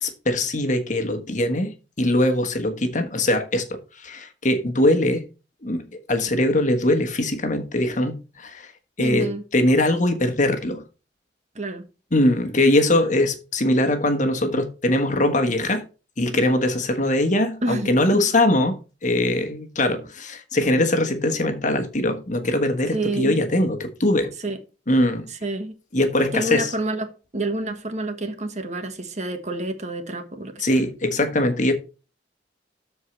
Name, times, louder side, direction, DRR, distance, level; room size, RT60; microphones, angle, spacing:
voice 1, 0.0-1.7 2.0-5.2 5.6-5.8 6.1-8.7 9.0-10.8 12.1-15.8 16.2-24.3 24.9-25.3 25.9-26.7 30.6-31.7, left 1 dB, 45° left, 1.4 m, -21 dB
voice 2, 9.0-9.4 11.5-11.8 17.6-18.2 22.9-23.4 24.4-24.6 25.3-25.8 26.3-30.8, right 2 dB, 40° right, 1.4 m, -28 dB
13.5 x 4.6 x 3.2 m
head